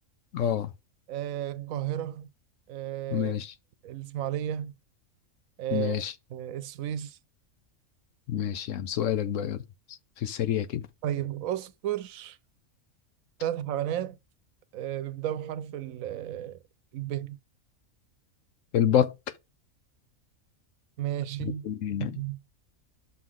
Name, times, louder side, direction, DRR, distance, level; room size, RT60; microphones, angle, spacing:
voice 1, 0.3-0.7 3.1-3.5 5.7-6.1 8.3-9.6 10.2-10.9 18.7-19.1 21.4-22.2, left 10 dB, 70° left, 1.0 m, -27 dB
voice 2, 1.1-2.3 2.7-3.4 3.8-4.7 5.6-6.0 6.3-7.2 11.0-12.4 13.4-14.2 14.7-16.6 16.9-17.4 21.0-21.6 22.0-22.4, right 11 dB, 80° right, 1.0 m, -33 dB
6.2 x 3.8 x 6.1 m
omnidirectional pair, 1.4 m